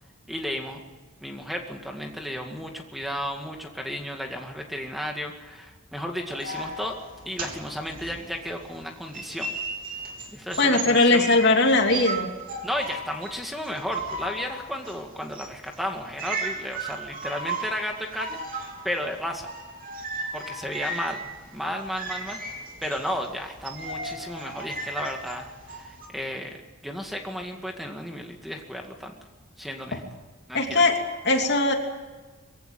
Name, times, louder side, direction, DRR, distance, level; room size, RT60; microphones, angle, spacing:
voice 1, 0.3-0.8 1.2-7.0 7.3-9.5 10.3-11.3 12.6-19.5 20.3-22.4 22.8-26.6 26.8-29.1 29.6-30.0 30.5-30.8, equal, ahead, 3 dB, 2.1 m, -33 dB
sound 1, 6.3-8.8 9.1-26.1, right 2 dB, 45° right, 3.9 m, -36 dB
voice 2, 10.6-12.3 29.9-30.0 30.5-31.0 31.2-31.7, left 2 dB, 55° left, 3 dB, 3.0 m, -20 dB
23.0 x 16.5 x 9.3 m, 1.3 s
head